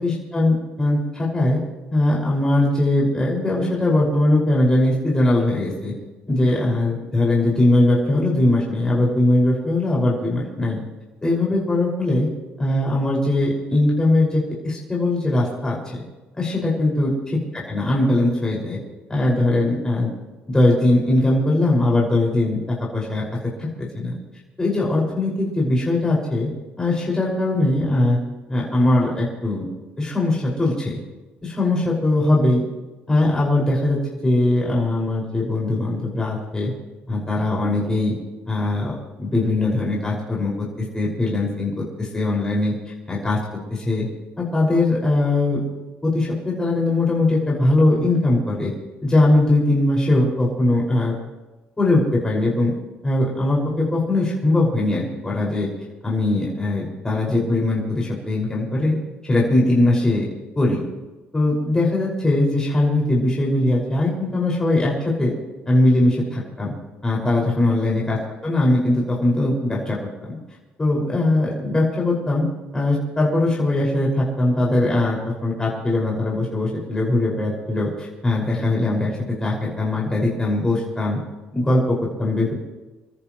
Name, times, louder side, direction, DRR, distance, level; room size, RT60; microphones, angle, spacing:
voice 1, 0.0-1.6 1.9-5.9 6.3-10.8 11.2-12.3 12.6-16.0 16.4-18.8 19.1-20.1 20.5-22.6 22.9-23.2 23.6-23.7 24.0-24.1 24.6-26.5 26.8-28.2 28.5-29.7 30.0-31.0 31.6-32.6 33.1-36.7 37.1-38.1 38.5-42.7 43.1-43.4 43.7-44.1 44.4-45.6 46.0-48.7 49.0-51.1 51.8-52.7 53.0-55.7 56.0-59.0 59.2-60.3 60.5-60.8 61.3-65.3 65.7-66.7 67.0-68.2 68.4-70.0 70.8-72.5 72.7-81.2 81.5-82.5, left 2 dB, 15° left, -4 dB, 5.7 m, -20 dB
28.0 x 14.0 x 3.1 m, 1.2 s
cardioid pair, 100°, 4 cm